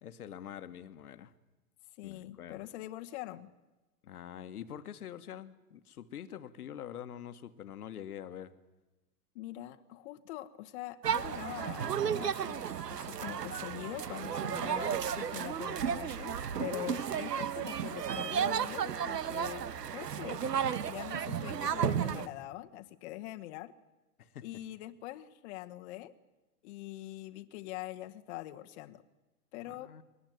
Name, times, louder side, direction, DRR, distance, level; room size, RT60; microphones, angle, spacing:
voice 1, 0.0-1.3 2.0-2.6 4.0-8.5 17.0-17.1 24.2-24.5 29.6-30.0, left 10 dB, 70° left, 1.5 m, -45 dB
voice 2, 2.0-3.5 9.3-20.5 20.8-23.7 24.4-26.1 26.6-29.0 29.5-29.9, left 15 dB, 45° left, 1.2 m, -43 dB
sound 1, 11.0-22.3, right 8 dB, 85° right, 1.3 m, -33 dB
22.5 x 19.5 x 9.3 m
hypercardioid pair, 120°, 47 cm